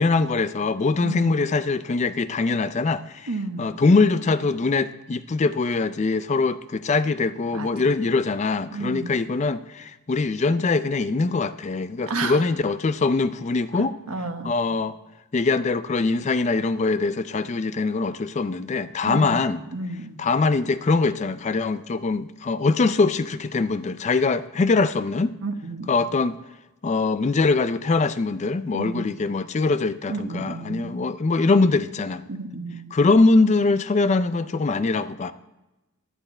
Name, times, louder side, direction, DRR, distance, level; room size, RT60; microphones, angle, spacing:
voice 1, 0.0-3.3 3.6-13.9 14.4-14.9 15.3-19.6 20.2-25.3 25.9-26.4 26.8-32.2 32.9-35.3, left 3 dB, 30° left, 14 dB, 0.4 m, -22 dB
voice 2, 1.0-1.3 3.3-3.8 7.5-7.9 8.7-9.2 12.1-12.4 13.7-14.5 19.1-19.5 19.7-20.2 25.4-26.0 28.7-29.1 30.1-31.0 32.3-32.9, right 3 dB, 80° right, 6 dB, 1.1 m, -32 dB
11.5 x 10.0 x 4.3 m, 1.0 s
head